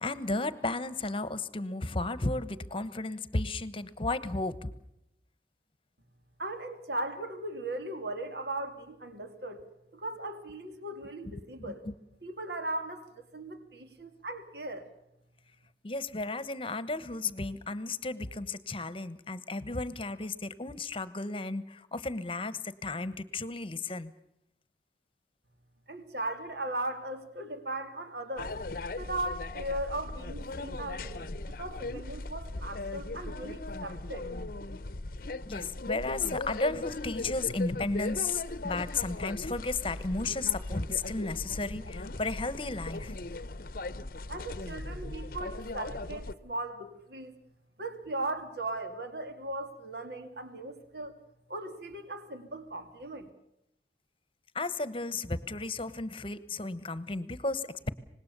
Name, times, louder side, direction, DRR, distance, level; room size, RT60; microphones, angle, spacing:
voice 1, 0.0-4.7 11.3-11.4 11.7-11.9 15.8-24.1 35.5-43.2 54.5-57.9, left 3 dB, 30° left, 15 dB, 1.2 m, -34 dB
voice 2, 6.4-9.6 9.9-11.8 12.2-14.9 25.9-28.5 29.0-34.3 44.3-47.3 47.8-51.1 51.5-53.3, right 2 dB, 65° right, 7 dB, 2.7 m, -38 dB
sound 1, 28.4-46.3, left 2 dB, 50° left, 0.8 m, -38 dB
25.5 x 20.5 x 6.9 m, 0.82 s
head